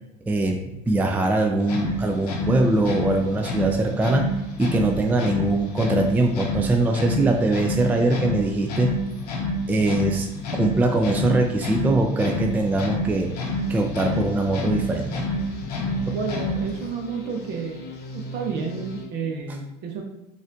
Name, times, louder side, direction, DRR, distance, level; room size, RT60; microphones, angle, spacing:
voice 1, 0.3-0.6 0.9-4.3 4.6-8.9 9.7-10.3 10.5-13.3 13.7-15.1 16.1-16.2, right 2 dB, 10° right, 3 dB, 0.3 m, -22 dB
sound 1, 1.6-16.8, left 1 dB, 90° left, 0.7 m, -28 dB
sound 2, 13.3-19.1, left 1 dB, 55° left, 0.9 m, -38 dB
voice 2, 16.1-17.8 18.1-20.0, right 5 dB, 55° right, 2 dB, 0.8 m, -30 dB
4.0 x 2.5 x 2.7 m, 0.93 s
hypercardioid pair, 85°, 20 cm